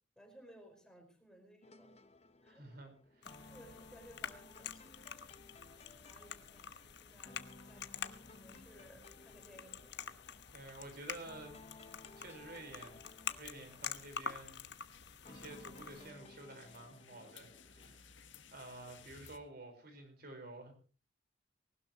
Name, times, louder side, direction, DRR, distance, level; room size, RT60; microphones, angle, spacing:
voice 1, 0.1-2.0 2.4-2.7 3.4-5.1 6.0-9.9, equal, 5° left, 3 dB, 5.0 m, -60 dB
sound 1, 1.6-18.0, left 2 dB, 35° left, 1.0 m, -59 dB
voice 2, 2.5-3.5 10.5-11.5 11.9-13.0 13.4-14.7 15.3-18.1 18.5-20.7, right 2 dB, 55° right, 6 dB, 4.6 m, -51 dB
sound 2, 3.2-16.1, left 7 dB, 65° left, 1.2 m, -47 dB
sound 3, 12.2-19.4, left 7 dB, 80° left, 1.8 m, -61 dB
19.5 x 18.5 x 3.0 m, 0.37 s
head